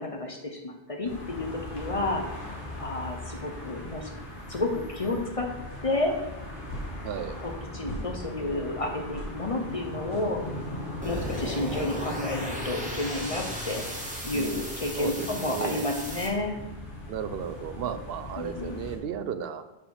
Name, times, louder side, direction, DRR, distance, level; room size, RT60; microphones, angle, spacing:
voice 1, 0.0-2.2 2.5-4.1 4.5-5.5 5.8-6.1 7.4-10.4 11.0-13.8 14.2-16.6 18.4-18.8, left 2 dB, 35° left, 2 dB, 0.8 m, -31 dB
sound 1, 1.0-19.0, left 1 dB, 55° left, 1.7 m, -40 dB
sound 2, 5.7-5.8 6.7-7.0 7.9-8.1 9.1-9.4 10.1-10.3 11.7-11.9, equal, 85° left, 2.6 m, -38 dB
voice 2, 7.0-7.4 14.3-15.9 17.1-19.6, right 8 dB, 75° right, 11 dB, 0.8 m, -34 dB
sound 3, 11.0-16.3, equal, 5° right, 1.6 m, -36 dB
5.9 x 4.8 x 6.4 m, 0.99 s
omnidirectional pair, 1.0 m